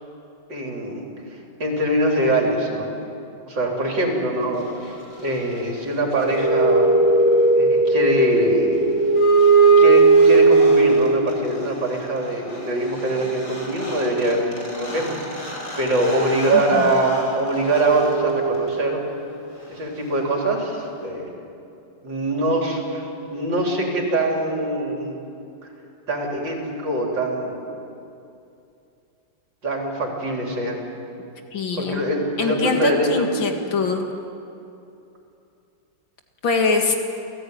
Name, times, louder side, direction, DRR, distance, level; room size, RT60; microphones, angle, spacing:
voice 1, 0.5-3.0 3.5-4.9 5.2-6.9 7.5-8.9 9.6-15.2 15.8-19.0 19.7-21.4 22.0-25.2 26.1-27.7 29.6-30.8 31.8-33.3, right 1 dB, 70° right, 0 dB, 4.5 m, -23 dB
sound 1, 5.9-11.3 13.2-13.3 13.5-19.0, right 3 dB, 60° left, 5.7 m, -18 dB
voice 2, 16.5-16.9 31.5-32.0 32.4-34.0 36.4-36.9, left 4 dB, 80° left, 4 dB, 2.7 m, -23 dB
28.5 x 16.0 x 9.4 m, 2.7 s
omnidirectional pair, 2.1 m